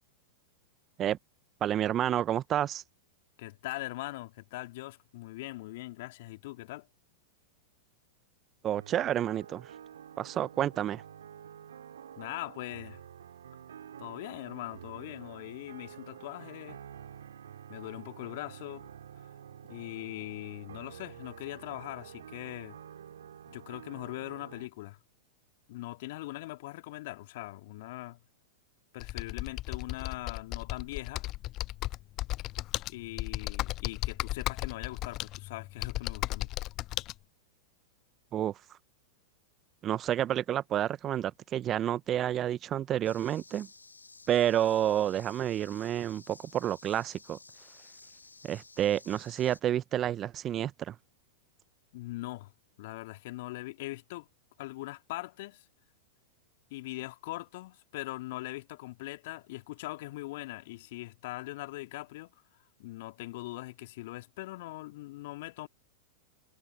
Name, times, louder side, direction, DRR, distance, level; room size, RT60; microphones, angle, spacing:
voice 1, 1.6-2.8 8.6-9.7 10.2-11.0 38.3-38.6 39.8-43.7 44.3-47.4 48.4-51.0, right 11 dB, 30° right, 0.9 m, -29 dB
voice 2, 3.4-6.9 12.2-13.0 14.0-16.8 17.7-18.9 19.7-22.8 23.5-25.0 25.7-28.2 28.9-31.3 32.9-36.5 51.9-52.5 52.8-54.3 54.6-55.6 56.7-62.3 62.8-65.7, left 19 dB, 55° left, 2.4 m, -41 dB
sound 1, 8.7-24.7, right 9 dB, 70° right, 3.4 m, -49 dB
Computer keyboard, 29.0-37.1, left 17 dB, 40° left, 0.4 m, -35 dB
sound 2, 43.0-49.6, left 3 dB, 85° left, 4.8 m, -54 dB
figure-of-eight pair, 95°, 0 cm